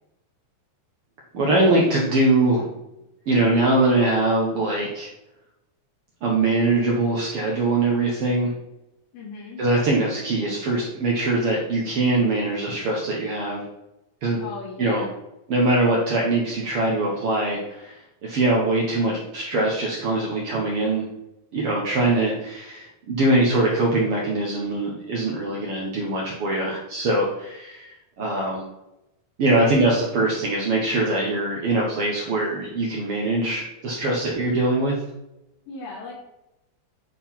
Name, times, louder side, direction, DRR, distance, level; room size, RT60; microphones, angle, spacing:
voice 1, 1.3-2.6 3.3-5.1 6.2-8.5 9.6-13.6 14.2-14.4 14.8-15.1 15.5-17.9 18.2-21.1 21.5-27.9 28.2-28.6 29.4-35.0, right 2 dB, 85° right, -3 dB, 1.2 m, -22 dB
voice 2, 9.1-9.6 14.4-15.1 29.4-29.8 35.7-36.1, left 4 dB, 80° left, -7 dB, 3.9 m, -37 dB
9.0 x 3.7 x 4.5 m, 0.90 s
omnidirectional pair, 4.2 m